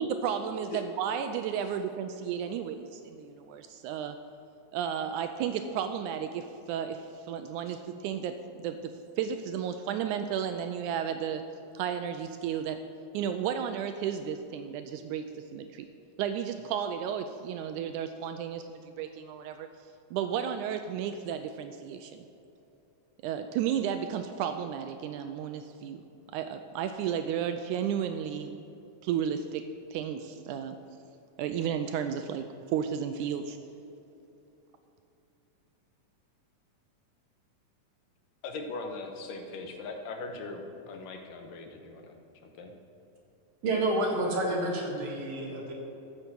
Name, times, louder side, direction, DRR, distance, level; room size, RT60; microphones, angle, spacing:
voice 1, 0.0-4.2 4.7-11.4 11.7-12.8 13.1-15.9 16.2-19.7 20.1-22.2 23.2-26.0 26.3-28.6 29.0-29.7 29.9-30.8 31.4-33.6, right 8 dB, 80° right, 8 dB, 1.8 m, -33 dB
voice 2, 38.4-42.1 42.4-42.7, left 3 dB, 85° left, 4 dB, 2.7 m, -40 dB
voice 3, 43.6-45.7, right 1 dB, 55° right, -1 dB, 2.4 m, -29 dB
14.0 x 6.5 x 6.2 m, 2.9 s
omnidirectional pair, 3.8 m